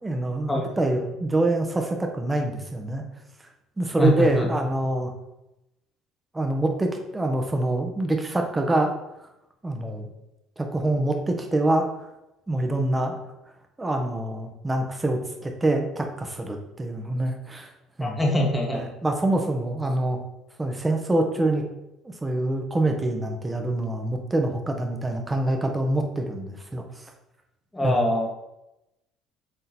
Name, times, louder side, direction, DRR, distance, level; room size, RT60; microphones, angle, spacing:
voice 1, 0.0-3.0 3.8-5.1 6.3-8.9 9.6-10.1 10.6-11.9 12.5-13.2 13.8-17.7 18.0-18.2 18.7-20.2 20.6-21.6 22.0-27.1 27.8-28.0, right 2 dB, 15° right, 3 dB, 1.3 m, -25 dB
voice 2, 4.0-4.5 18.0-18.8 27.7-28.3, left 1 dB, 15° left, -1 dB, 1.7 m, -23 dB
6.8 x 3.8 x 4.3 m, 0.90 s
hypercardioid pair, 70°, 0 cm